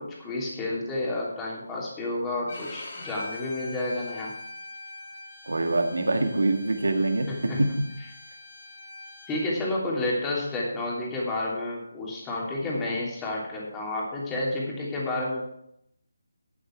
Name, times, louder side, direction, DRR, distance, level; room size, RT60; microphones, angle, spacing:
voice 1, 0.0-4.3 7.3-7.7 9.3-15.4, left 2 dB, 10° left, -4 dB, 3.2 m, -30 dB
Bowed string instrument, 2.5-9.4, left 2 dB, 45° left, 4.4 m, -43 dB
voice 2, 5.5-7.7, right 2 dB, 80° right, 5 dB, 2.0 m, -25 dB
12.5 x 8.7 x 4.6 m, 0.76 s
figure-of-eight pair, 160°, 0 cm